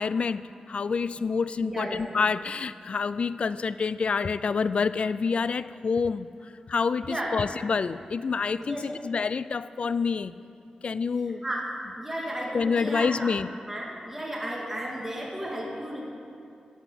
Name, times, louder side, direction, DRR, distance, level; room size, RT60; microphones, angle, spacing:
voice 1, 0.0-6.3 6.7-10.3 10.8-11.4 12.5-13.5, left 5 dB, 55° left, 15 dB, 0.3 m, -27 dB
voice 2, 1.6-2.0 7.1-7.4 8.6-9.0 11.4-11.7 11.9-13.3 13.7-16.0, right 1 dB, 10° right, -4 dB, 2.0 m, -33 dB
15.0 x 8.0 x 6.0 m, 2.5 s
wide cardioid pair, 110°, 2 cm